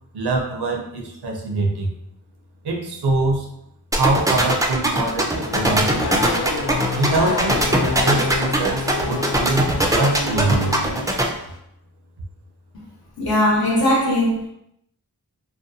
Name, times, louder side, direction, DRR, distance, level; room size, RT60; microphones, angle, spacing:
voice 1, 0.1-1.9 2.6-3.5 3.9-6.4 7.0-10.8, right 2 dB, 80° right, 1 dB, 0.6 m, -24 dB
sound 1, 3.9-11.2, right 2 dB, 10° right, 0.3 m, -20 dB
Race car auto racing / Accelerating revving vroom, 4.9-11.6, left 4 dB, 80° left, 0.5 m, -28 dB
voice 2, 13.2-14.5, left 1 dB, 65° left, -3 dB, 0.9 m, -19 dB
2.5 x 2.1 x 2.6 m, 0.77 s
wide cardioid pair, 50°, 39 cm